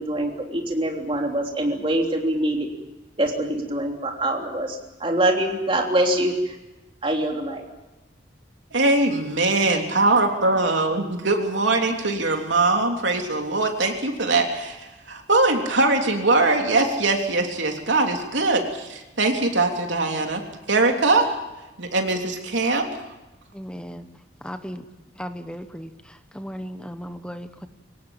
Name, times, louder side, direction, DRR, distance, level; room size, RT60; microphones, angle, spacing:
voice 1, 0.0-2.7 3.2-6.5 7.0-7.6, right 1 dB, 30° right, 2 dB, 3.3 m, -24 dB
voice 2, 8.7-20.4 20.7-21.4 21.8-22.9, right 2 dB, 80° right, 3 dB, 3.3 m, -22 dB
voice 3, 23.5-24.0 24.4-24.8 25.2-25.9 26.3-27.7, equal, 5° left, 9 dB, 1.0 m, -35 dB
23.5 x 18.5 x 8.9 m, 1.0 s
head